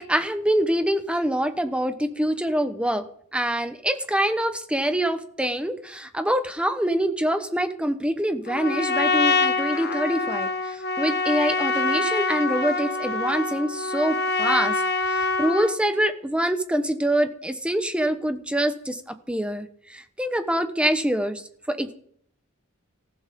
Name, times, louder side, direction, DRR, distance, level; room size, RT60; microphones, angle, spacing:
voice 1, 0.0-3.0 3.3-10.5 11.0-14.7 15.1-19.0 19.3-19.7 19.9-21.4 21.7-21.9, right 1 dB, 5° right, 9 dB, 1.2 m, -25 dB
Trumpet, 8.5-15.8, left 3 dB, 50° left, 1.5 m, -25 dB
19.0 x 15.0 x 3.8 m, 0.64 s
head